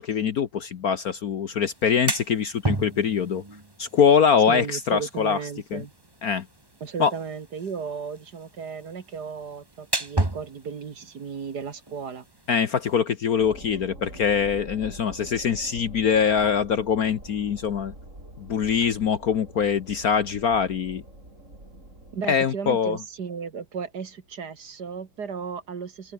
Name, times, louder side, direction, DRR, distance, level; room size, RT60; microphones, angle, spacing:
voice 1, 0.0-3.4 3.8-5.4 5.7-5.8 6.2-6.5 7.0-7.1 12.5-17.9 18.4-21.0 22.3-23.0, left 7 dB, 55° left, 1.3 m, -23 dB
sound 1, 1.7-13.0, right 2 dB, 10° right, 1.7 m, -35 dB
voice 2, 4.5-5.9 6.8-12.3 22.1-26.1, right 6 dB, 50° right, 2.3 m, -35 dB
sound 2, 13.4-22.3, right 1 dB, 35° right, 8.2 m, -45 dB
omnidirectional pair, 2.2 m